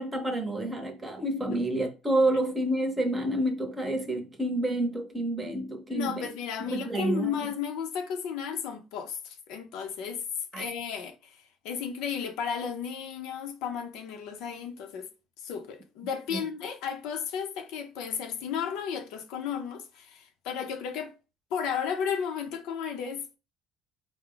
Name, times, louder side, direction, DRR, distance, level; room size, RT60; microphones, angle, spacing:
voice 1, 0.0-6.3 6.7-7.3 10.5-10.7 16.3-16.4, right 1 dB, 15° right, 0.8 m, -29 dB
voice 2, 5.9-10.3 10.5-15.1 15.4-21.1 21.5-23.4, left 7 dB, 75° left, 0.7 m, -34 dB
4.6 x 2.2 x 3.7 m
cardioid pair, 140°, 0 cm